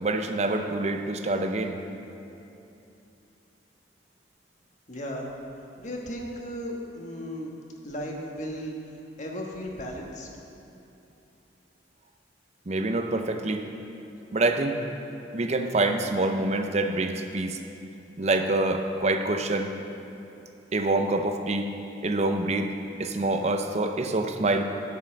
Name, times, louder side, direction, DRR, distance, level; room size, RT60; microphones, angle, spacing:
voice 1, 0.0-1.8 12.7-13.6 14.3-14.8 15.3-17.6 18.2-19.7 20.7-21.7 22.0-22.7 23.0-24.6, right 2 dB, 35° right, 6 dB, 0.6 m, -26 dB
voice 2, 4.9-5.3 5.8-7.5 7.8-8.7 9.2-10.3, equal, 40° left, 0 dB, 1.3 m, -35 dB
10.5 x 5.5 x 7.6 m, 2.9 s
head